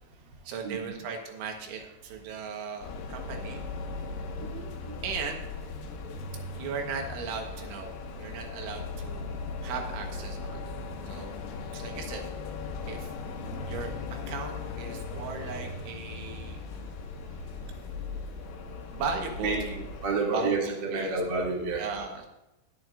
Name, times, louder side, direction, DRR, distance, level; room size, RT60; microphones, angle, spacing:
voice 1, 0.5-3.6 5.0-5.5 6.6-9.4 9.6-10.6 11.1-11.4 11.7-12.2 12.9-13.1 13.7-13.9 14.3-16.6 18.9-19.9 20.3-21.2 21.7-22.3, right 5 dB, 75° right, 2 dB, 3.6 m, -37 dB
sound 1, 2.8-20.1, left 4 dB, 85° left, 3.8 m, -38 dB
voice 2, 4.3-4.9 11.1-11.2 14.2-14.3 14.9-15.9 19.4-19.6 20.0-21.9, right 3 dB, 40° right, -3 dB, 1.6 m, -31 dB
20.5 x 9.1 x 2.5 m, 0.95 s
omnidirectional pair, 5.8 m